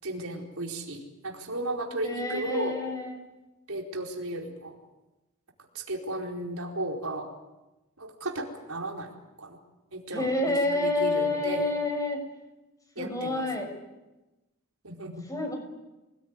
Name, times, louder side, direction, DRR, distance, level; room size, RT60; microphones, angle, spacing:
voice 1, 0.0-2.8 3.7-4.8 5.7-7.3 8.0-9.1 9.4-9.6 9.9-11.7 13.0-13.4 14.8-15.2, right 1 dB, 80° right, 1 dB, 4.6 m, -34 dB
voice 2, 2.0-3.2 10.1-12.2 13.0-13.7 15.3-15.6, left 2 dB, 15° left, 4 dB, 6.3 m, -28 dB
26.5 x 20.5 x 9.8 m, 1.1 s
head